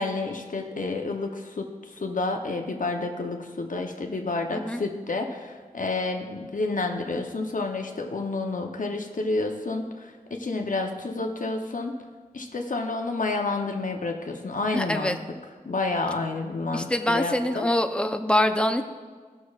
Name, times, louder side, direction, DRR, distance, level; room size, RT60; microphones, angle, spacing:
voice 1, 0.0-12.0 12.3-15.2 15.6-17.7, left 3 dB, 65° left, 3 dB, 0.7 m, -30 dB
voice 2, 14.7-15.2 16.7-18.8, left 1 dB, 5° left, 6 dB, 0.6 m, -24 dB
16.5 x 6.4 x 2.4 m, 1.5 s
wide cardioid pair, 60°, 15 cm